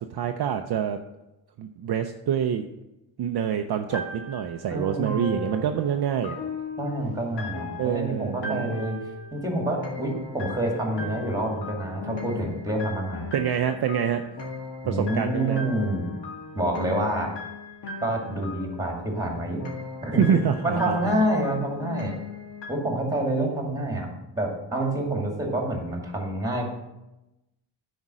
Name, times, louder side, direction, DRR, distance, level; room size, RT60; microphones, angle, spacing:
voice 1, 0.1-1.0 1.6-2.7 3.2-6.4 7.8-8.8 13.3-14.2 14.9-15.7 20.2-21.1, right 8 dB, 50° right, 6 dB, 0.6 m, -26 dB
sound 1, 3.9-22.7, left 4 dB, 55° left, 1.9 m, -38 dB
voice 2, 4.7-5.6 6.8-9.0 9.3-13.4 14.8-16.0 16.5-17.3 18.0-19.6 20.0-22.2 22.7-24.1 24.3-26.7, right 1 dB, 5° right, 1 dB, 2.3 m, -27 dB
9.6 x 5.2 x 6.1 m, 0.96 s
cardioid pair, 110°, 50 cm